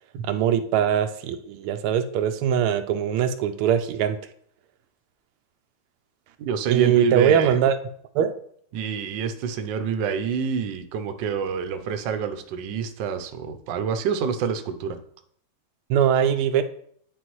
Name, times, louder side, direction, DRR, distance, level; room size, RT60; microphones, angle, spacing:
voice 1, 0.2-4.2 6.7-7.7 8.1-8.4 15.9-16.6, right 9 dB, 85° right, 9 dB, 1.5 m, -21 dB
voice 2, 6.4-7.6 8.7-15.0, right 6 dB, 70° right, 8 dB, 1.2 m, -27 dB
10.0 x 4.3 x 3.1 m, 0.63 s
omnidirectional pair, 2.4 m